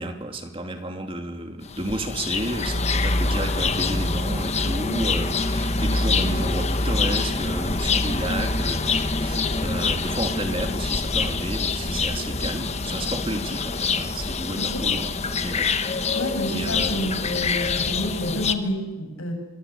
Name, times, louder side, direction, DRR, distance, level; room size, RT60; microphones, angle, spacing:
voice 1, 0.0-16.1 16.5-17.2 17.6-17.7, right 1 dB, 25° right, 5 dB, 2.6 m, -32 dB
sound 1, 1.6-18.5, left 3 dB, 30° left, 1.2 m, -25 dB
voice 2, 16.1-19.3, equal, 85° left, 4 dB, 7.3 m, -29 dB
27.5 x 24.5 x 8.3 m, 1.1 s
head